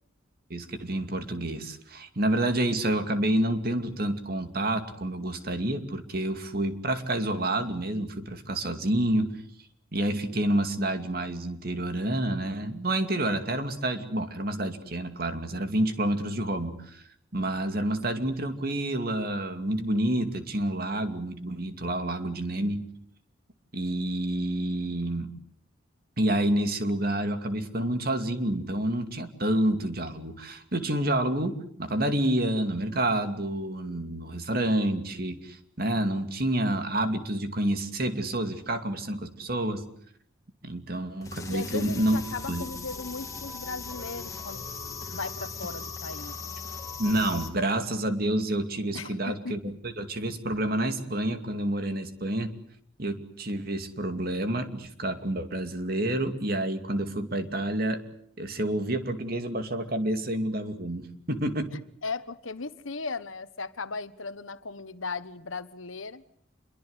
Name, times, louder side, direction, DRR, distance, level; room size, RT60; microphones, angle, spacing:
voice 1, 0.5-9.4 9.9-17.0 17.3-22.8 23.7-25.3 26.2-39.8 40.6-42.2 42.5-42.7 47.0-52.5 53.0-58.0 58.4-61.7, right 1 dB, 50° right, 2.5 m, -28 dB
sound 1, 41.2-47.5, left 3 dB, 15° left, 2.8 m, -38 dB
voice 2, 41.5-44.7 45.1-46.6 48.9-49.5 61.7-66.2, left 4 dB, 80° left, 1.3 m, -37 dB
27.5 x 23.0 x 8.2 m
head